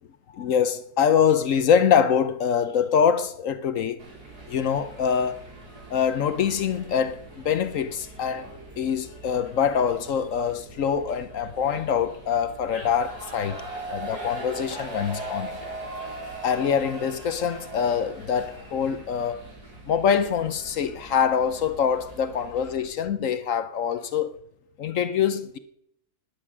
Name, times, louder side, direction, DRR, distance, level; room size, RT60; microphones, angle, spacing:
voice 1, 0.3-4.0 4.5-5.4 5.9-15.6 16.4-19.4 19.9-24.4 24.8-25.6, left 7 dB, 60° left, 1.0 m, -24 dB
sound 1, 4.0-22.9, right 2 dB, 70° right, 5.6 m, -41 dB
18.0 x 10.0 x 6.0 m
omnidirectional pair, 1.7 m